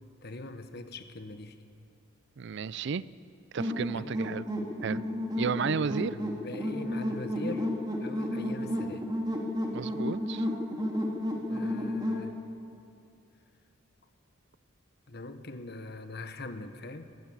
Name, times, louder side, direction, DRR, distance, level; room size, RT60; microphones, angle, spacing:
voice 1, 0.2-1.7 3.9-4.2 5.7-7.7 8.0-9.1 11.5-12.4 15.1-17.1, left 2 dB, 50° left, 8 dB, 1.2 m, -42 dB
voice 2, 2.4-3.0 3.5-4.4 4.8-5.0 5.4-6.2 9.7-10.5, right 5 dB, 55° right, 18 dB, 0.4 m, -32 dB
sound 1, 3.6-12.3, left 1 dB, 20° right, 2.5 m, -32 dB
21.5 x 14.0 x 8.8 m, 2.5 s
head